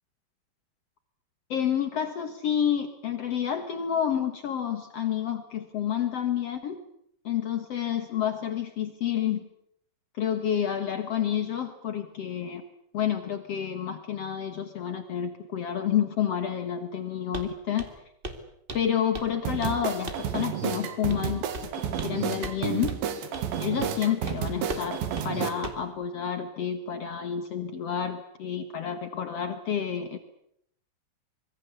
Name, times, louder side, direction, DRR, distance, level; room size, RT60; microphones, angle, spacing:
voice 1, 1.5-6.8 7.2-9.4 10.2-12.6 12.9-17.8 18.7-21.4 22.0-23.0 23.6-30.2, left 9 dB, 90° left, 8 dB, 1.3 m, -29 dB
Walk footsteps, 17.3-17.5 17.8-18.0 18.2-18.4 18.7-19.3 19.6-19.8 20.1-20.3 21.1-21.3 21.5-22.1 22.4-22.6 22.9-23.0 23.3-23.5 23.8-24.0 24.3-24.4 24.7-24.9 25.2-25.3 25.6-25.9, right 1 dB, 50° right, 0.6 m, -37 dB
sound 1, 19.5-25.5, right 9 dB, 75° right, 4.1 m, -31 dB
25.5 x 22.0 x 8.3 m, 0.71 s
omnidirectional pair, 5.3 m